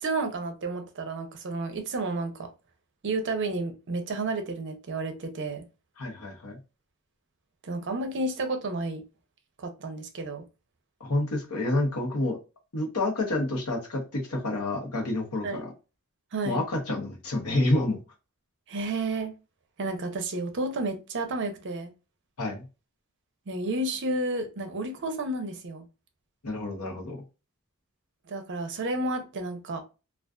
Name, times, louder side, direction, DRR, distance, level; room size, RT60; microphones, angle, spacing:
voice 1, 0.0-2.5 3.0-5.6 7.6-9.0 9.6-10.4 15.4-15.6 16.3-16.6 18.7-19.3 19.8-21.9 23.5-25.9 28.3-29.8, right 2 dB, 55° right, 0.6 m, -31 dB
voice 2, 6.0-6.6 11.0-12.4 12.7-15.7 16.4-18.0 22.4-22.6 26.4-27.2, left 2 dB, 85° left, 0.9 m, -28 dB
2.4 x 2.3 x 2.2 m
head